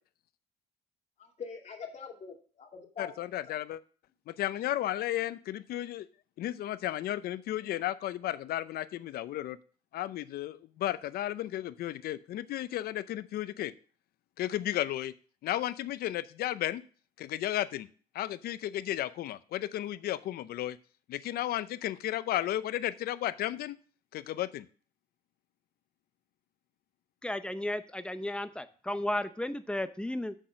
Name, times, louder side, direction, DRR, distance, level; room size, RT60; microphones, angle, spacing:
voice 1, 1.2-3.1 3.5-3.6, left 6 dB, 40° left, 2 dB, 2.4 m, -43 dB
voice 2, 3.0-3.8 4.3-6.1 6.4-9.6 9.9-13.7 14.4-15.1 15.4-16.8 17.2-17.9 18.1-20.8 21.1-23.8 24.1-24.7, left 13 dB, 65° left, 15 dB, 0.6 m, -33 dB
voice 3, 27.2-30.4, left 1 dB, 5° left, 11 dB, 0.7 m, -34 dB
7.6 x 6.5 x 5.0 m, 0.41 s
cardioid pair, 110°, 17 cm